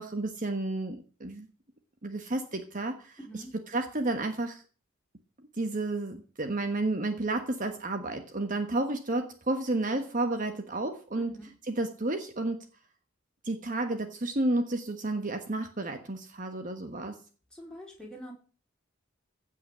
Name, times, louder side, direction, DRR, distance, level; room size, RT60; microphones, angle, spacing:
voice 1, 0.0-1.5 2.0-4.6 5.6-11.3 11.7-12.6 13.4-17.2, right 2 dB, 40° right, 7 dB, 1.3 m, -31 dB
voice 2, 3.2-3.5 11.2-11.4 17.5-18.3, equal, 5° left, -1 dB, 4.4 m, -44 dB
16.0 x 5.8 x 8.6 m, 0.39 s
head